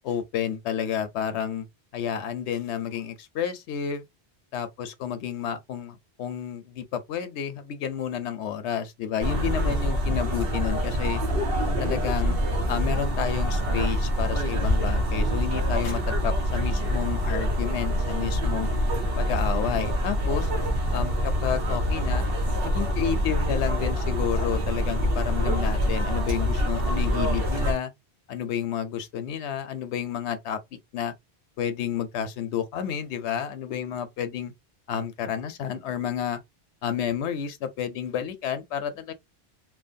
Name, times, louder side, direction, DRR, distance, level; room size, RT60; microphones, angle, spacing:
voice 1, 0.0-1.7 1.9-4.1 4.5-11.2 11.8-12.4 12.7-18.7 19.2-20.5 20.9-22.2 22.6-27.9 28.3-30.6 30.9-31.1 31.6-34.5 34.9-36.4 36.8-39.1, left 8 dB, 85° left, 0.9 m, -30 dB
sound 1, 9.2-27.7, equal, 60° right, 0.9 m, -25 dB
2.9 x 2.2 x 2.5 m
omnidirectional pair, 1.1 m